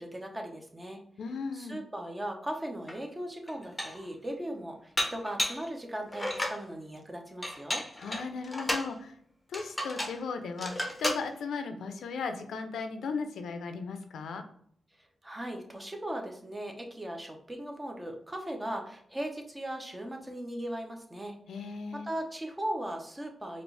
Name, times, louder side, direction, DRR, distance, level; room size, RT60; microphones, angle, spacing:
voice 1, 0.0-1.0 1.5-7.8 15.2-21.4 21.6-21.7 22.0-23.6, right 1 dB, 20° right, 2 dB, 0.9 m, -38 dB
voice 2, 1.2-1.8 8.0-9.1 9.5-10.7 11.0-14.4 21.5-22.1, left 4 dB, 85° left, 7 dB, 0.5 m, -36 dB
Dishes pots and pans, 2.9-3.0 3.5-4.1 5.0-5.7 6.1-6.6 7.4-8.9 9.5-10.2 10.6-11.2, left 1 dB, 15° left, 0.8 m, -33 dB
4.3 x 2.5 x 3.3 m, 0.63 s
cardioid pair, 70°, 0 cm